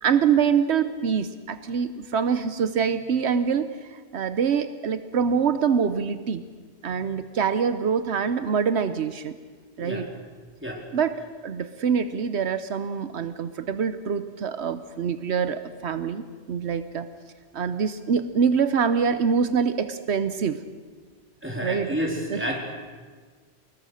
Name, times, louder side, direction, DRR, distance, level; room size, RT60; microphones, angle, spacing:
voice 1, 0.0-6.4 6.8-9.3 9.8-10.1 10.9-11.2 11.4-17.1 17.5-20.6 21.6-21.9 22.3-22.4, right 6 dB, 80° right, 11 dB, 1.1 m, -25 dB
voice 2, 21.4-22.6, equal, 10° right, -1 dB, 4.1 m, -29 dB
25.0 x 21.0 x 6.5 m, 1.5 s
omnidirectional pair, 1.1 m